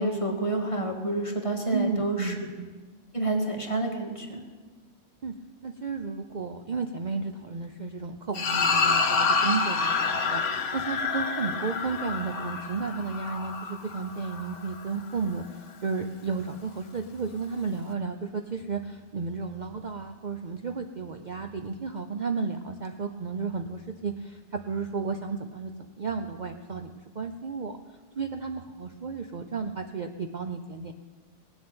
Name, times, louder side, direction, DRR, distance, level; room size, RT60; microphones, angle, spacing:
voice 1, 0.0-2.3 3.1-4.4, right 2 dB, 25° left, 0 dB, 1.9 m, -28 dB
voice 2, 1.7-2.8 5.2-5.3 5.6-25.7 26.0-27.8 28.2-30.9, right 4 dB, 45° right, 6 dB, 0.7 m, -33 dB
sound 1, 8.3-14.9, left 4 dB, 75° left, 1.4 m, -28 dB
18.5 x 7.6 x 8.8 m, 1.4 s
omnidirectional pair, 1.2 m